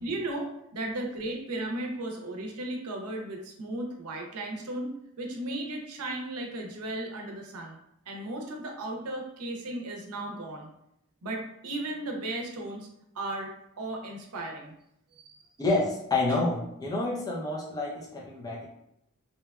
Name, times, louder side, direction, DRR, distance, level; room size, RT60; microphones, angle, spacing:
voice 1, 0.0-7.8 8.1-10.7 11.2-12.9 13.1-13.5 13.8-14.7 15.1-15.5, right 1 dB, 85° right, 2 dB, 0.6 m, -35 dB
voice 2, 15.6-18.7, left 2 dB, 15° left, -4 dB, 0.4 m, -28 dB
2.8 x 2.2 x 2.3 m, 0.78 s
head